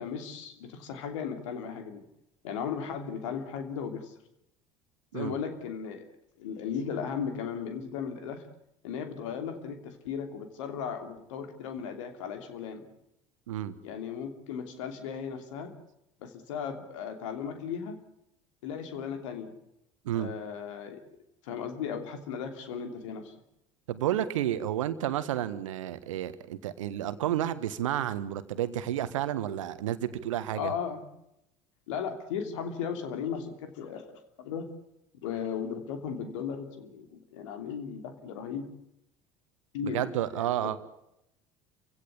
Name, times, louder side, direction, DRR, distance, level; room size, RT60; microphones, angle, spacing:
voice 1, 0.0-2.0 2.4-4.1 5.1-6.0 6.4-8.5 8.8-12.9 13.8-15.7 16.2-18.0 18.6-19.5 20.1-21.0 21.4-23.3 30.6-31.1 31.9-34.1 34.4-34.7 35.2-38.7 39.7-40.1 40.4-40.8, left 7 dB, 65° left, 7 dB, 3.0 m, -36 dB
voice 2, 23.9-30.7 39.8-40.8, right 11 dB, 70° right, 14 dB, 1.3 m, -31 dB
28.0 x 16.5 x 8.4 m, 0.83 s
figure-of-eight pair, 65°, 17 cm